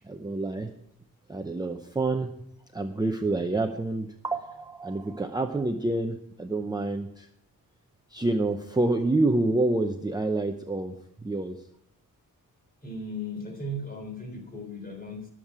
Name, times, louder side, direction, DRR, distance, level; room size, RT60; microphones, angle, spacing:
voice 1, 0.0-0.7 1.3-2.3 2.7-7.3 8.1-11.7, right 2 dB, 10° right, 5 dB, 0.6 m, -28 dB
voice 2, 12.8-15.3, left 1 dB, 25° left, 3 dB, 3.4 m, -36 dB
20.0 x 7.4 x 4.8 m, 0.71 s
wide cardioid pair, 180°, 34 cm